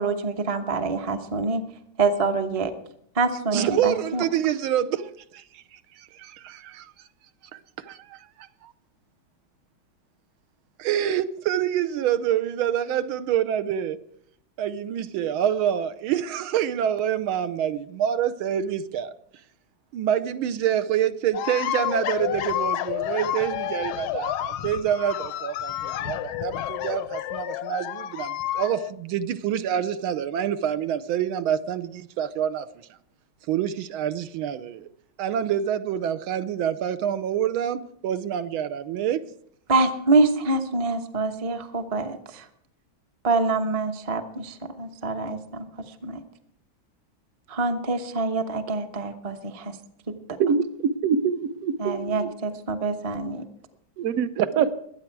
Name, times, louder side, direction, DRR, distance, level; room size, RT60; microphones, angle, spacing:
voice 1, 0.0-1.6 2.0-2.7 3.1-4.2 39.7-42.5 43.2-45.7 46.0-46.2 47.5-49.7 50.1-50.2 51.8-53.4, right 3 dB, 30° right, 0.6 m, -25 dB
voice 2, 3.5-6.9 7.5-8.7 10.8-14.0 14.6-19.1 19.9-32.7 33.5-34.9 35.2-39.2, right 10 dB, 85° right, 1.6 m, -27 dB
sound 1, 21.3-28.9, left 12 dB, 85° left, 1.5 m, -30 dB
voice 3, 51.0-52.3 54.0-54.7, right 7 dB, 60° right, 0.9 m, -24 dB
22.0 x 8.8 x 4.6 m
omnidirectional pair, 2.2 m